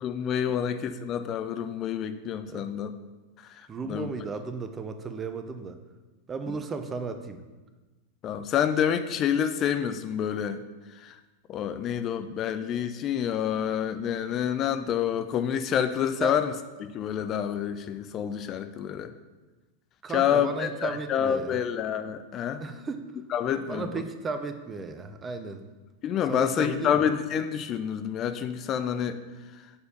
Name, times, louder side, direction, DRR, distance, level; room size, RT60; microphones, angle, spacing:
voice 1, 0.0-2.9 3.5-4.1 8.2-10.6 10.9-11.2 11.5-16.5 16.8-19.1 20.1-22.6 23.3-24.0 26.0-29.2, left 9 dB, 30° left, 9 dB, 0.4 m, -28 dB
voice 2, 3.7-5.8 6.3-7.4 14.3-14.5 16.2-16.4 20.0-21.6 22.6-23.1 23.7-25.6 26.3-27.1, right 4 dB, 20° right, 8 dB, 0.6 m, -35 dB
7.0 x 4.3 x 6.7 m, 1.2 s
figure-of-eight pair, 90°, 0 cm